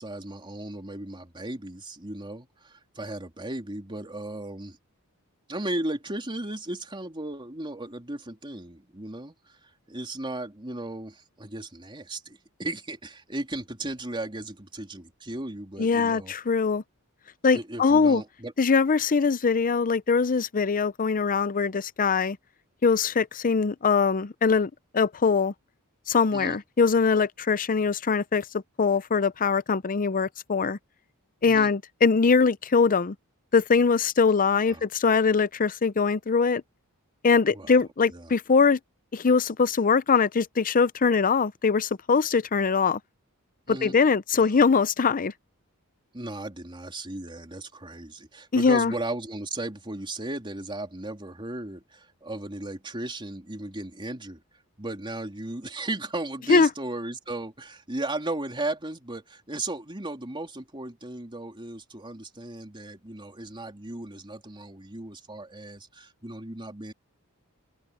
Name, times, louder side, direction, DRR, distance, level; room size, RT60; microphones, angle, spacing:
voice 1, 0.0-4.8 5.5-16.3 17.5-18.5 26.3-26.6 31.5-31.7 34.6-34.8 37.5-37.7 38.1-38.3 43.7-44.0 44.4-44.5 46.1-54.4 54.8-66.9, right 2 dB, 20° right, 3.4 m, -36 dB
voice 2, 15.8-16.8 17.4-18.2 18.6-22.4 22.8-25.5 26.1-30.8 31.4-33.2 33.5-36.6 37.2-38.8 39.1-43.0 43.7-45.3 48.5-48.9 56.5-56.7, left 5 dB, 40° left, 0.6 m, -22 dB
open air
head